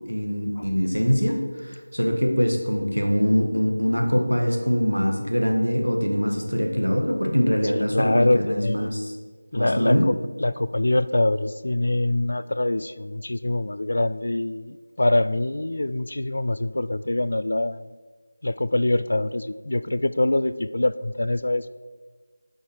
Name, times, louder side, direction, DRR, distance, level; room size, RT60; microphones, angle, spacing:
voice 1, 0.1-9.2 9.5-10.1, equal, 90° right, 3 dB, 1.3 m, -23 dB
voice 2, 7.7-8.9 9.5-17.9 18.4-21.7, left 2 dB, 55° left, 14 dB, 0.3 m, -24 dB
8.3 x 5.5 x 4.7 m, 1.4 s
figure-of-eight pair, 165°, 0 cm